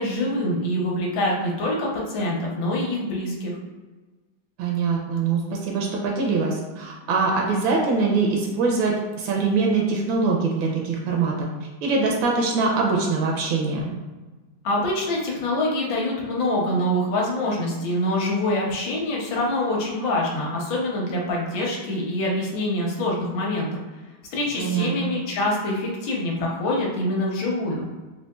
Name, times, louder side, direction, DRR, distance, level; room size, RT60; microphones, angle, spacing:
voice 1, 0.0-3.5 14.6-23.8 24.3-27.8, left 1 dB, 75° left, -2 dB, 1.5 m, -25 dB
voice 2, 4.6-11.5 11.8-13.9 24.6-25.1, right 4 dB, 80° right, -1 dB, 1.3 m, -23 dB
4.2 x 2.7 x 2.3 m, 1.3 s
omnidirectional pair, 2.2 m